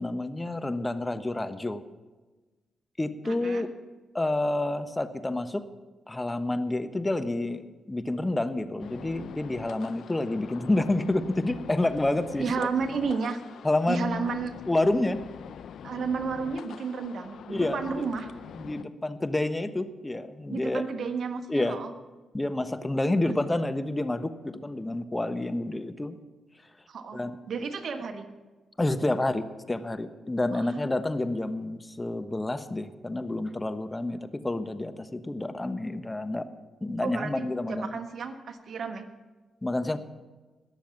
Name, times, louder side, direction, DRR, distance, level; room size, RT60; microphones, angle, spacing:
voice 1, 0.0-1.8 3.0-3.7 4.1-5.6 6.1-12.7 13.6-14.3 14.7-15.2 17.5-18.1 18.5-20.8 21.5-21.8 22.3-26.2 27.1-27.4 28.8-36.5 36.8-37.9 39.6-40.0, left 2 dB, 20° left, 11 dB, 1.1 m, -29 dB
voice 2, 3.2-3.6 12.4-13.4 13.9-14.5 15.8-18.3 20.5-21.9 26.9-27.2 27.5-28.3 30.5-30.6 37.0-39.0, right 5 dB, 65° right, 6 dB, 1.4 m, -32 dB
sound 1, 8.8-18.8, left 8 dB, 75° left, 0.4 m, -44 dB
20.0 x 7.1 x 5.9 m, 1.2 s
supercardioid pair, 45°, 0 cm